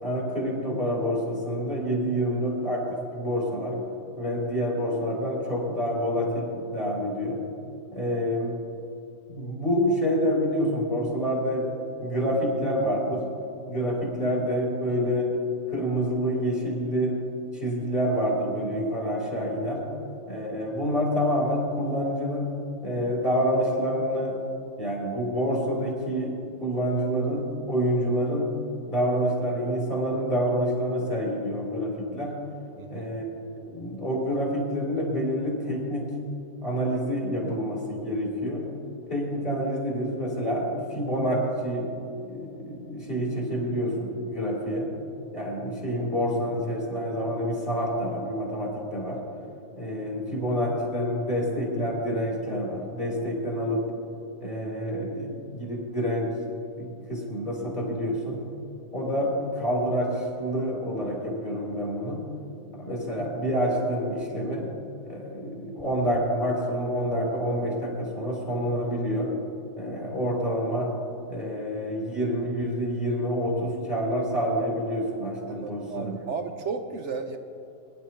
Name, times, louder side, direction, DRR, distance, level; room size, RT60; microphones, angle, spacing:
voice 1, 0.0-3.8 4.2-7.4 7.9-8.5 9.3-11.7 12.0-13.2 13.7-15.3 15.7-17.1 17.5-19.8 20.3-22.5 22.8-24.4 24.8-26.3 26.6-28.5 28.9-32.3 32.9-33.2 33.6-36.1 36.6-38.6 39.1-44.9 45.3-49.2 49.8-53.9 54.4-56.3 56.8-58.4 58.9-62.2 62.7-64.7 65.0-69.3 69.8-71.0 71.3-76.2, equal, 25° left, -4 dB, 4.0 m, -27 dB
voice 2, 32.8-33.1 75.5-77.4, right 5 dB, 65° right, 7 dB, 0.7 m, -34 dB
23.5 x 11.0 x 3.1 m, 2.8 s
omnidirectional pair, 1.9 m